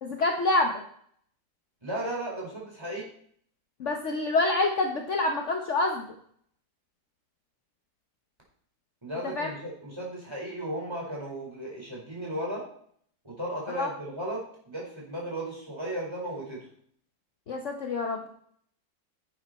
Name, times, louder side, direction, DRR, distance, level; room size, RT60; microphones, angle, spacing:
voice 1, 0.0-0.8 3.8-6.1 9.4-9.5 13.7-13.9 17.5-18.3, left 2 dB, 50° left, 3 dB, 1.2 m, -27 dB
voice 2, 1.8-3.0 9.0-12.6 13.2-16.6, right 1 dB, 15° right, -4 dB, 4.6 m, -35 dB
11.0 x 8.7 x 4.2 m, 0.63 s
omnidirectional pair, 1.8 m